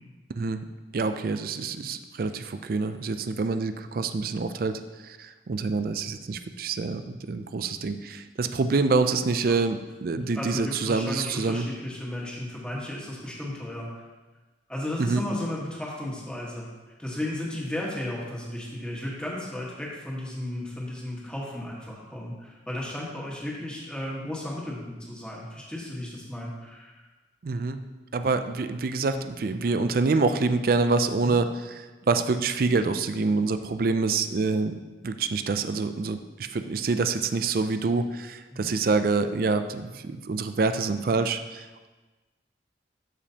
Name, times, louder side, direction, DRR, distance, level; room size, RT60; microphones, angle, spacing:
voice 1, 0.9-11.7 15.0-15.2 27.4-27.8 28.1-31.5 32.1-34.8 35.0-41.9, right 4 dB, 55° right, 9 dB, 0.4 m, -26 dB
voice 2, 10.1-13.9 14.7-16.7 17.0-27.1 31.2-31.4 38.5-38.7, left 1 dB, 5° left, -5 dB, 1.4 m, -34 dB
12.5 x 5.1 x 2.8 m, 1.2 s
head